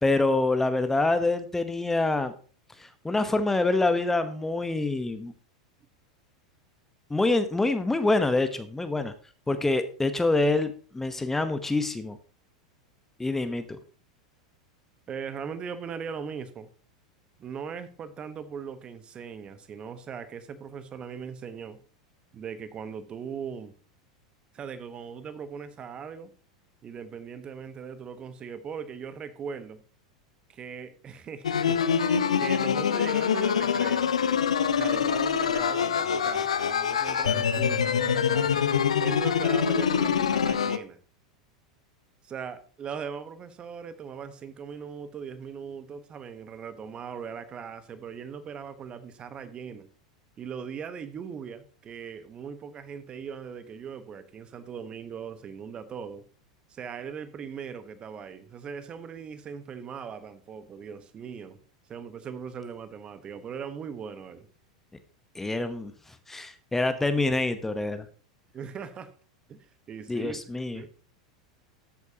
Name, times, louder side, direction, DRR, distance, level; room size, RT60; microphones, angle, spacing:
voice 1, 0.0-2.3 2.8-5.3 7.1-9.1 9.5-12.2 13.2-13.6 65.3-65.9 66.3-68.1 70.1-70.8, left 2 dB, 10° left, 1.0 m, -26 dB
voice 2, 15.1-16.7 17.4-21.8 22.3-23.7 24.5-26.3 26.8-29.8 30.5-34.1 34.7-38.7 39.0-41.0 42.2-49.9 50.4-56.2 56.7-61.6 61.9-64.5 68.5-69.1 69.5-70.4 70.7-70.9, right 6 dB, 30° right, 1.2 m, -39 dB
sound 1, 31.4-40.8, left 7 dB, 75° left, 0.7 m, -25 dB
13.5 x 8.2 x 2.9 m
figure-of-eight pair, 85°, 3 cm